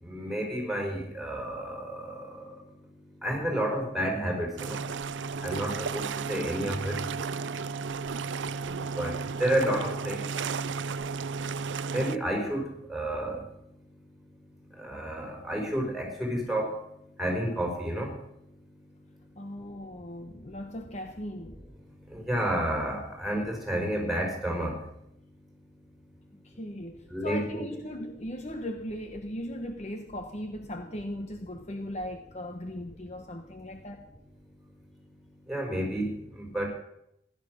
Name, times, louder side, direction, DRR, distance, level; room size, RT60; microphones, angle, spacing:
voice 1, 0.0-2.3 3.2-4.8 5.4-7.0 8.6-10.2 11.9-12.6 12.9-13.4 14.8-16.8 17.2-18.1 22.1-24.8 27.1-27.6 35.5-36.7, right 1 dB, ahead, 5.1 m, -30 dB
sound 1, 4.6-12.2, right 5 dB, 80° right, 0.5 m, -33 dB
voice 2, 19.4-21.6 26.3-34.0, left 1 dB, 40° left, 1.1 m, -38 dB
16.5 x 12.0 x 6.4 m
head